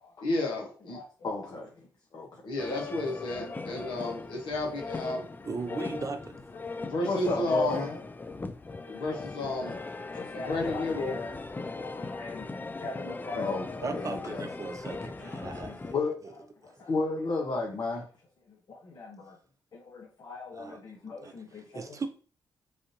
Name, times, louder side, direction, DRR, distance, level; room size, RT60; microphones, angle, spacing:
voice 1, 0.2-1.0 2.4-5.3 6.8-7.8 8.9-9.7 10.3-11.2, left 2 dB, 75° left, 1.0 m, -31 dB
voice 2, 0.9-2.4 3.3-4.2 5.7-6.1 6.7-8.0 8.7-9.8 10.1-11.3 11.7-12.5 12.8-14.5 15.2-18.1 18.5-19.4 19.7-22.0, left 3 dB, 55° left, 0.8 m, -36 dB
sound 1, 2.6-15.9, left 3 dB, 25° left, 0.4 m, -39 dB
voice 3, 5.4-6.4 13.8-16.0 16.2-16.3 16.8-16.9 20.5-20.8 21.2-22.1, right 4 dB, 40° right, 0.6 m, -38 dB
3.4 x 2.5 x 2.7 m
hypercardioid pair, 40°, 8 cm